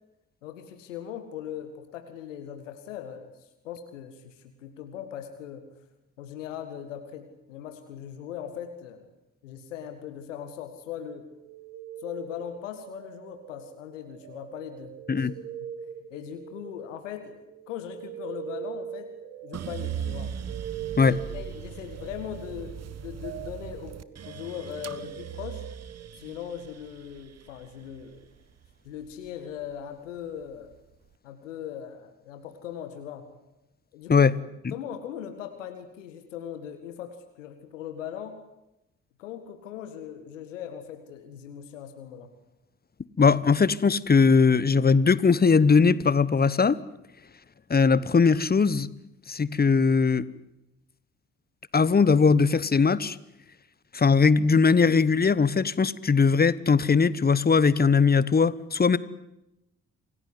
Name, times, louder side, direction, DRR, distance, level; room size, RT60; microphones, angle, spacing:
voice 1, 0.4-5.6 6.2-9.1 9.4-11.3 12.0-14.9 15.2-15.3 15.8-19.1 19.4-20.3 21.0-25.7 26.2-28.2 28.9-30.7 31.2-33.2 33.9-34.3 34.7-38.4 39.2-42.3, left 9 dB, 80° left, 8 dB, 1.9 m, -39 dB
sound 1, 11.2-17.2 17.5-26.1, right 9 dB, 65° right, 2.4 m, -42 dB
sound 2, 19.5-29.7 30.2-31.0, right 9 dB, 45° right, 1.3 m, -39 dB
voice 2, 43.2-46.8 47.7-48.9 49.3-50.2 51.7-53.2 53.9-59.0, left 5 dB, 25° left, 19 dB, 1.3 m, -20 dB
27.5 x 17.5 x 9.8 m, 0.90 s
figure-of-eight pair, 40°, 37 cm